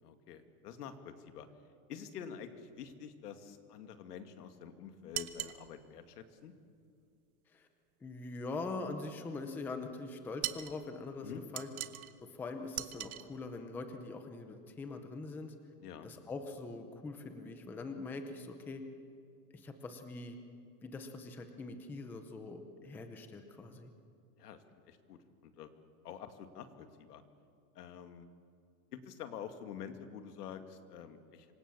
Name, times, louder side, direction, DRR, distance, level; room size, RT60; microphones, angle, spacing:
voice 1, 0.0-1.5 1.9-6.5 11.2-11.4 15.8-16.1 24.4-25.7 26.0-27.2 27.7-28.3 28.9-31.5, left 8 dB, 80° left, 8 dB, 2.5 m, -47 dB
sound 1, 5.1-5.6 10.4-10.8 11.6-12.1 12.7-13.2, right 14 dB, 65° right, 1.4 m, -39 dB
voice 2, 8.0-11.7 12.3-15.5 16.0-18.8 19.5-20.4 20.8-23.9, left 3 dB, 5° left, 7 dB, 0.6 m, -43 dB
26.5 x 24.5 x 7.0 m, 2.4 s
supercardioid pair, 170°, 46 cm